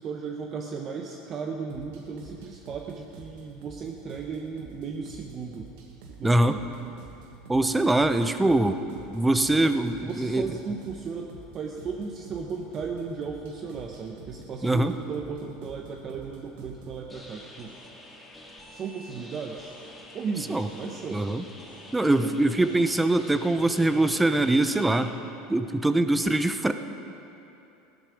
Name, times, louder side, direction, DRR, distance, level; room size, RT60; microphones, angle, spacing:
voice 1, 0.0-5.7 6.1-6.6 9.6-17.7 18.7-19.7 20.1-21.2 22.2-22.4, right 5 dB, 40° right, 2 dB, 1.0 m, -36 dB
sound 1, 1.7-17.1, right 5 dB, 70° right, 1.9 m, -48 dB
voice 2, 6.2-6.6 7.5-8.8 9.1-10.6 14.6-14.9 20.5-20.7 21.1-21.4 21.9-25.1 25.5-26.7, right 2 dB, 10° right, 9 dB, 0.8 m, -23 dB
sound 2, 17.1-25.1, left 1 dB, 10° left, 2.7 m, -47 dB
16.0 x 11.5 x 5.1 m, 2.8 s
hypercardioid pair, 90°, 0 cm